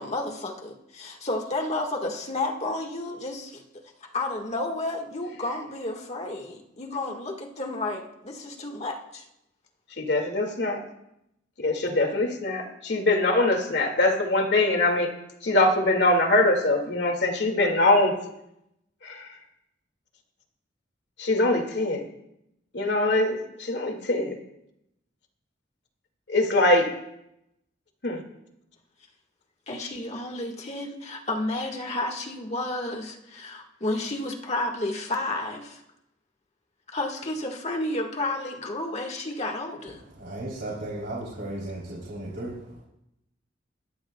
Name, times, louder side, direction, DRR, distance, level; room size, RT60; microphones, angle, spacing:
voice 1, 0.0-3.6 4.0-9.2 29.7-35.8 36.9-40.0, left 2 dB, 40° left, 2 dB, 1.7 m, -31 dB
voice 2, 10.0-10.8 11.6-15.1 15.4-18.1 19.0-19.2 21.2-22.0 22.7-24.4 26.3-26.9 28.0-28.2, left 2 dB, 65° left, 3 dB, 2.2 m, -23 dB
voice 3, 40.1-42.8, right 1 dB, 65° right, -5 dB, 3.3 m, -35 dB
21.5 x 14.0 x 2.3 m, 0.83 s
head